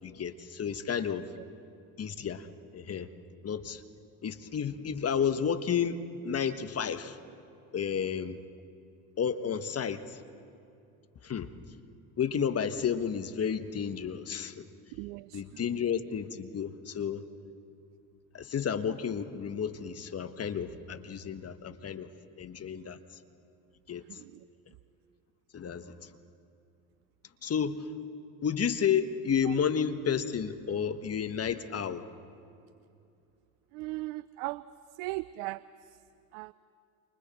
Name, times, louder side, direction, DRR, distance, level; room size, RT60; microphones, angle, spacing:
voice 1, 0.0-1.3 2.0-2.5 2.7-3.1 3.4-3.8 4.2-6.0 6.2-7.2 7.7-8.4 9.2-10.2 11.2-11.5 12.2-14.7 15.3-17.2 18.3-22.1 22.4-23.0 23.9-24.0 25.5-26.1 27.4-27.9 28.4-32.1, left 7 dB, 35° left, 10 dB, 1.3 m, -31 dB
voice 2, 15.0-15.4 33.7-34.6 35.0-35.6 36.3-36.5, right 20 dB, 65° right, 18 dB, 0.6 m, -37 dB
29.0 x 24.5 x 4.3 m, 2.5 s
hypercardioid pair, 70°, 43 cm